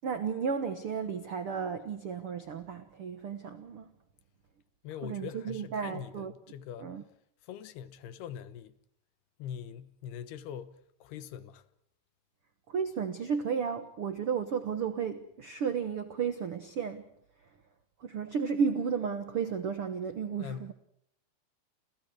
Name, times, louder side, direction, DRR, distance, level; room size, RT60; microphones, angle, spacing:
voice 1, 0.0-3.9 5.0-6.3 6.8-7.0 12.7-17.0 18.0-20.7, right 6 dB, 75° right, 1.3 m, -33 dB
voice 2, 4.8-7.0 7.4-8.8 9.4-11.6 20.4-20.7, left 9 dB, 75° left, 3.1 m, -43 dB
29.0 x 28.5 x 4.8 m
omnidirectional pair, 4.7 m